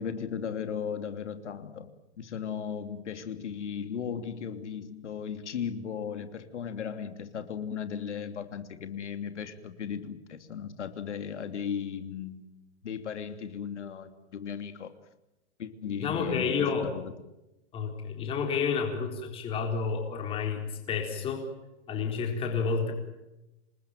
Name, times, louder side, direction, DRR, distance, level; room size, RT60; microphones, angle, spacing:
voice 1, 0.0-1.9 2.2-12.4 12.8-14.9 15.6-17.1, left 7 dB, 90° left, 8 dB, 3.0 m, -36 dB
voice 2, 16.0-16.9 17.7-21.4 21.9-22.9, left 5 dB, 15° left, 3 dB, 4.1 m, -30 dB
28.0 x 20.5 x 9.3 m, 0.98 s
hypercardioid pair, 165°, 34 cm